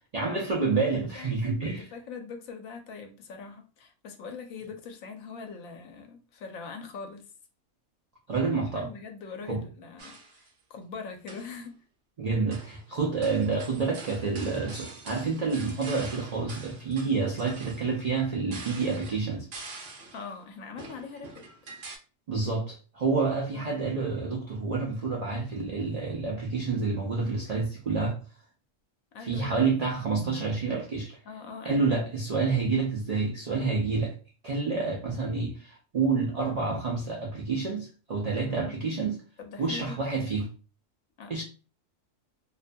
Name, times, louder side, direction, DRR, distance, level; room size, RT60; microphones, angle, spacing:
voice 1, 0.1-1.9 8.3-8.9 9.5-9.6 12.2-19.5 22.3-28.2 29.2-31.2 31.6-34.2 34.4-39.2 39.6-40.5 41.3-41.4, right 4 dB, 75° right, 0.3 m, -28 dB
voice 2, 0.9-1.3 1.6-7.3 8.6-11.8 20.1-21.5 23.5-23.8 29.1-29.5 31.2-32.0 38.4-38.8 39.4-40.0 41.2-41.4, left 5 dB, 90° left, 1.0 m, -42 dB
sound 1, 10.0-10.5 11.1-11.6 12.5-12.8 13.2-20.3 20.8-22.0, right 3 dB, 55° right, 0.8 m, -45 dB
2.6 x 2.2 x 2.5 m
omnidirectional pair, 1.4 m